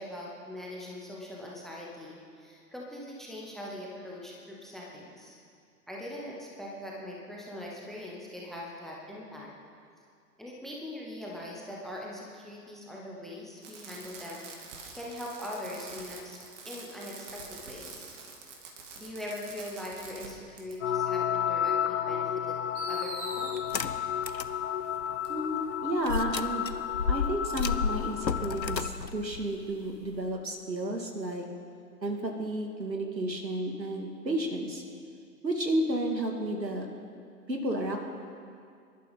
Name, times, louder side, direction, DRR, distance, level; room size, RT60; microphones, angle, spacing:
voice 1, 0.0-5.4 5.9-9.5 10.4-16.4 16.6-18.1 19.0-22.6 22.9-23.5, left 1 dB, ahead, -3 dB, 0.6 m, -41 dB
Fireworks, 13.6-20.3 20.6-20.7 21.8-21.9 22.7-23.6 25.2-25.3, right 4 dB, 45° right, 2.6 m, -45 dB
sound 1, 20.8-28.9, left 9 dB, 50° left, 0.5 m, -32 dB
sound 2, 23.6-24.6 25.0-25.1 26.0-30.3, left 5 dB, 90° left, 0.8 m, -32 dB
voice 2, 25.3-26.7 27.1-31.5 32.0-34.8 35.4-36.9 37.5-38.0, right 1 dB, 85° right, 2 dB, 2.5 m, -32 dB
25.5 x 12.0 x 4.0 m, 2.3 s
figure-of-eight pair, 120°, 49 cm